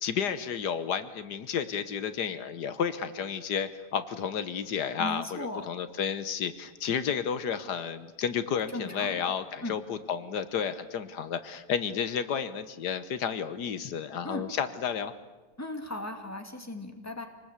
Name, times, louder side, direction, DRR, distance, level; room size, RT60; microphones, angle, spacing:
voice 1, 0.0-15.1, left 7 dB, 80° left, 12 dB, 1.6 m, -32 dB
voice 2, 5.0-5.7 8.7-9.3 9.6-9.8 14.2-14.4 15.6-17.3, left 1 dB, 10° left, 5 dB, 2.3 m, -37 dB
26.5 x 19.5 x 8.3 m, 1.2 s
omnidirectional pair, 1.8 m